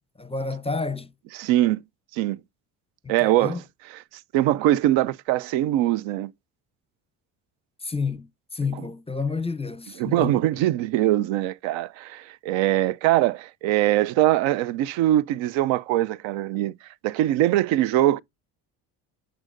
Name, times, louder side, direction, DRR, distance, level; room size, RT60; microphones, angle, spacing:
voice 1, 0.2-1.1 3.0-3.6 7.8-10.4, left 4 dB, 10° left, 0.7 m, -30 dB
voice 2, 1.3-1.8 2.1-2.4 3.1-3.6 3.9-4.0 4.3-6.3 8.7-8.9 10.0-16.7 17.0-18.2, right 14 dB, 70° right, 0.6 m, -22 dB
8.9 x 6.4 x 2.5 m
hypercardioid pair, 65°, 48 cm